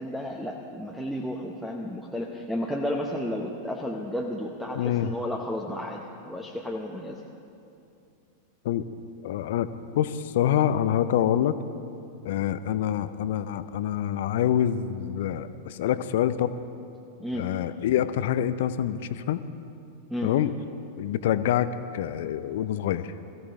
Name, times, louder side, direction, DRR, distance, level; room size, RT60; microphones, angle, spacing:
voice 1, 0.0-7.2 17.2-17.5 20.1-20.3, left 1 dB, ahead, 1 dB, 1.0 m, -32 dB
voice 2, 4.7-5.1 8.6-8.8 9.2-11.6 12.2-16.5 17.3-19.4 20.2-20.5 21.0-23.1, left 10 dB, 55° left, 13 dB, 0.5 m, -26 dB
21.5 x 15.0 x 3.6 m, 2.6 s
figure-of-eight pair, 90°, 0 cm